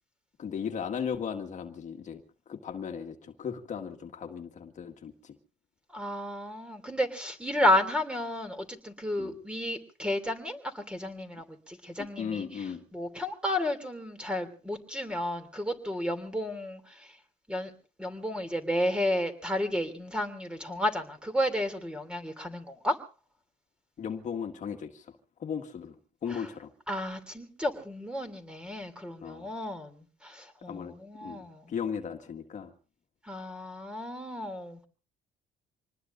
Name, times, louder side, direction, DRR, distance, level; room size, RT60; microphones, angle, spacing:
voice 1, 0.4-5.4 9.2-9.3 12.0-12.8 24.0-26.7 29.2-29.5 30.7-32.7, left 7 dB, 45° left, 5 dB, 1.8 m, -37 dB
voice 2, 5.9-12.4 12.9-17.2 17.5-17.7 18.0-23.0 26.3-26.4 26.9-31.7 33.2-34.9, left 1 dB, 5° right, 8 dB, 3.0 m, -32 dB
26.5 x 20.0 x 2.6 m, 0.36 s
cardioid pair, 110°, 17 cm